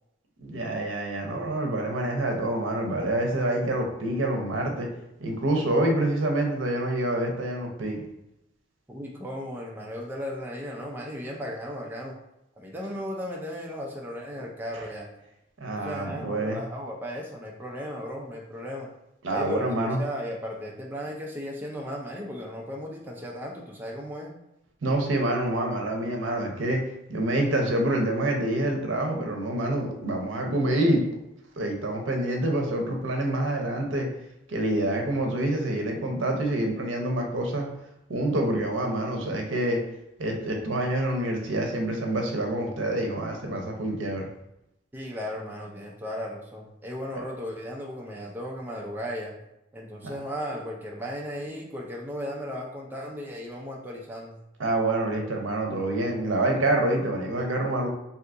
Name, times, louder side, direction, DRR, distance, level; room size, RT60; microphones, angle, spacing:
voice 1, 0.4-4.9 5.2-8.0 15.6-16.6 19.2-20.0 24.8-26.8 27.1-31.0 31.6-34.1 34.5-37.7 38.1-39.8 40.2-44.3 50.0-50.1 54.6-57.9, right 1 dB, 80° right, 2 dB, 0.6 m, -27 dB
voice 2, 8.9-12.1 12.6-15.1 15.7-18.9 19.3-24.3 44.9-49.3 49.7-54.4, equal, 10° right, -2 dB, 0.4 m, -36 dB
2.7 x 2.4 x 3.6 m, 0.85 s
head